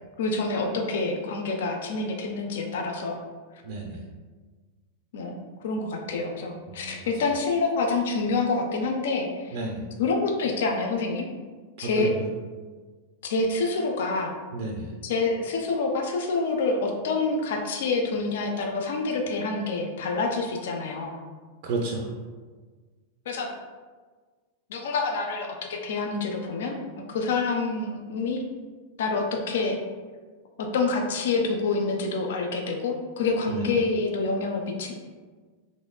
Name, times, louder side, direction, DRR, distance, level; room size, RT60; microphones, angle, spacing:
voice 1, 0.2-3.2 5.1-9.6 10.0-11.3 11.8-12.1 13.2-14.3 15.0-21.2 23.3-23.5 24.7-26.8 27.1-28.4 29.0-29.8 30.6-34.9, left 3 dB, 60° left, 3 dB, 0.4 m, -27 dB
voice 2, 3.6-4.0 6.7-7.1 9.5-9.8 11.8-12.3 14.5-14.9 21.6-22.1 33.5-33.7, right 3 dB, 50° right, 0 dB, 0.4 m, -32 dB
4.0 x 3.0 x 2.2 m, 1.4 s
figure-of-eight pair, 90°, 0 cm